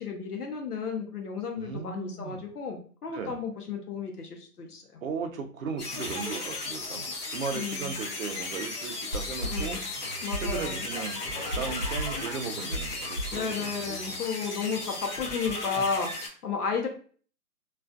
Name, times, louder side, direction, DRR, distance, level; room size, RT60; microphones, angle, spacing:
voice 1, 0.0-4.8 7.5-7.9 9.5-9.8 10.2-10.7 13.3-16.9, left 5 dB, 70° left, 3 dB, 0.7 m, -33 dB
voice 2, 1.6-2.4 3.1-3.4 5.0-9.8 10.4-11.2 11.6-14.2, right 5 dB, 60° right, 6 dB, 0.5 m, -36 dB
sound 1, 5.8-16.3, left 2 dB, 30° left, 0.7 m, -36 dB
sound 2, 9.1-14.1, right 1 dB, 25° right, 1.1 m, -36 dB
2.4 x 2.2 x 2.4 m, 0.44 s
hypercardioid pair, 165°, 48 cm